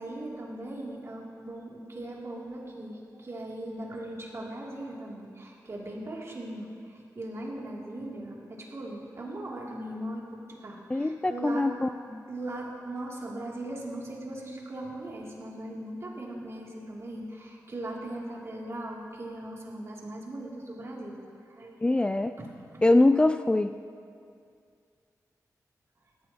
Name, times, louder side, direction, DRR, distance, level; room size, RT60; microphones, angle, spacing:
voice 1, 0.0-11.7 12.3-22.5, right 1 dB, 45° right, -3 dB, 2.7 m, -39 dB
voice 2, 10.9-12.2 21.8-22.3 22.8-23.7, left 2 dB, 15° left, 9 dB, 0.3 m, -23 dB
18.0 x 14.0 x 2.9 m, 2.3 s
cardioid pair, 80°, 6 cm